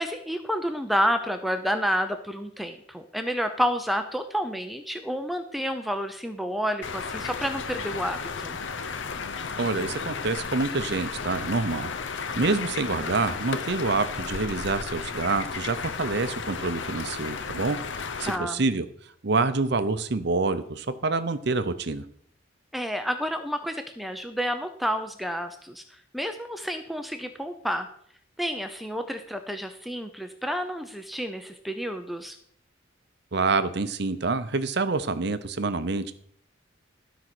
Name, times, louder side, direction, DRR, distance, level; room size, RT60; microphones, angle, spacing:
voice 1, 0.0-8.6 18.3-18.6 22.7-27.9 28.4-32.4, equal, ahead, 7 dB, 0.6 m, -30 dB
sound 1, 6.8-18.4, left 5 dB, 65° left, 0.7 m, -34 dB
voice 2, 9.6-17.8 18.2-18.9 19.2-22.0 33.3-36.1, right 3 dB, 55° right, 11 dB, 0.7 m, -27 dB
12.5 x 5.2 x 6.1 m, 0.66 s
head